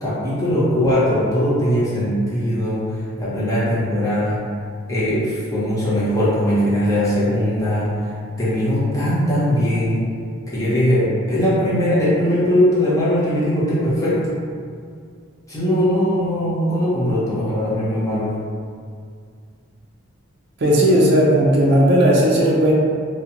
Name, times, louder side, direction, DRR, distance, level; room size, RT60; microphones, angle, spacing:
voice 1, 0.0-2.9 3.2-4.4 4.9-8.0 8.4-10.0 10.5-14.3 15.5-18.4, equal, 15° left, -9 dB, 0.6 m, -20 dB
voice 2, 20.6-22.7, equal, 50° right, -5 dB, 0.4 m, -15 dB
2.5 x 2.1 x 2.8 m, 2.1 s
head